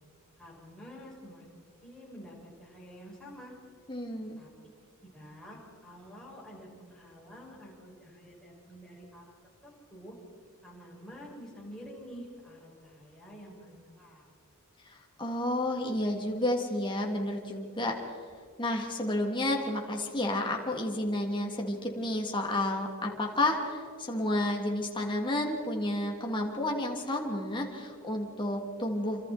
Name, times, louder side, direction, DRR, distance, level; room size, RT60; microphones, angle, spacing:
voice 1, 0.4-1.5 1.8-3.5 4.4-4.5 5.0-9.3 9.6-10.1 10.6-14.3, equal, 5° left, -5 dB, 7.1 m, -48 dB
voice 2, 3.9-4.4 15.2-17.9 18.6-29.3, left 1 dB, 20° left, 0 dB, 3.2 m, -31 dB
28.5 x 26.5 x 4.6 m, 2.1 s
head